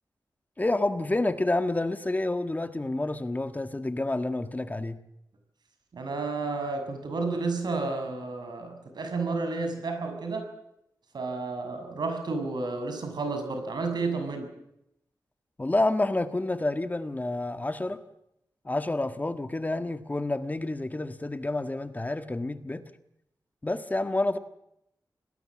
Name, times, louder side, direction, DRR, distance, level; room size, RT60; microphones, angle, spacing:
voice 1, 0.6-5.0 15.6-18.0 18.6-22.8 23.6-24.4, left 2 dB, 25° left, 9 dB, 1.6 m, -29 dB
voice 2, 5.9-10.5 11.1-14.5, right 3 dB, 90° right, 6 dB, 6.5 m, -31 dB
27.5 x 19.0 x 7.5 m, 0.80 s
wide cardioid pair, 105°, 7 cm